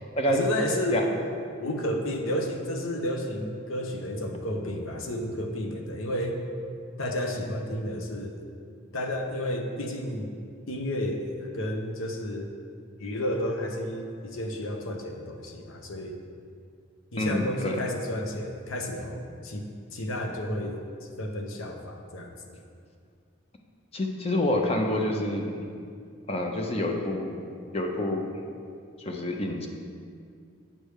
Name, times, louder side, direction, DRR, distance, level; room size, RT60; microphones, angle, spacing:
voice 1, 0.3-1.0 1.6-6.5 7.0-8.4 8.9-10.3 10.7-12.5 13.0-16.2 17.1-20.8 21.2-22.3, left 1 dB, 85° left, 3 dB, 0.9 m, -31 dB
voice 2, 17.2-17.8 23.9-25.5 26.3-27.3 27.7-28.3 29.0-29.7, left 1 dB, 30° left, 2 dB, 0.7 m, -27 dB
8.7 x 3.4 x 6.4 m, 2.3 s
head